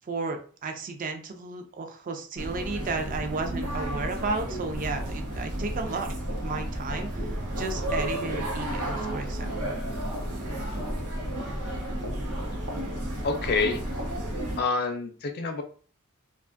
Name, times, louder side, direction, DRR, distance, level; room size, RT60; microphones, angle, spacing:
voice 1, 0.1-9.7, right 3 dB, 40° right, 6 dB, 0.4 m, -33 dB
sound 1, 2.4-14.6, right 1 dB, 90° right, 0.7 m, -32 dB
voice 2, 13.2-13.8 14.6-15.6, left 4 dB, 45° left, 6 dB, 0.4 m, -27 dB
2.5 x 2.3 x 2.4 m, 0.42 s
head